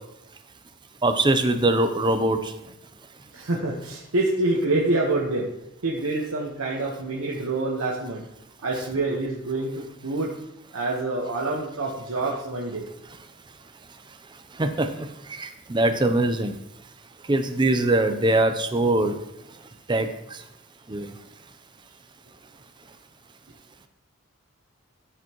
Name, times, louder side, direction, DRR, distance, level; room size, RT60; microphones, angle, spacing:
voice 1, 1.0-2.4 14.6-14.7 15.7-16.5 17.3-19.1 19.9-20.1 20.9-21.1, right 2 dB, 20° right, 8 dB, 0.5 m, -21 dB
voice 2, 3.3-5.5 5.8-8.2 8.6-10.3 10.7-12.8, right 2 dB, 90° right, -3 dB, 1.2 m, -26 dB
13.0 x 5.2 x 3.0 m, 0.85 s
head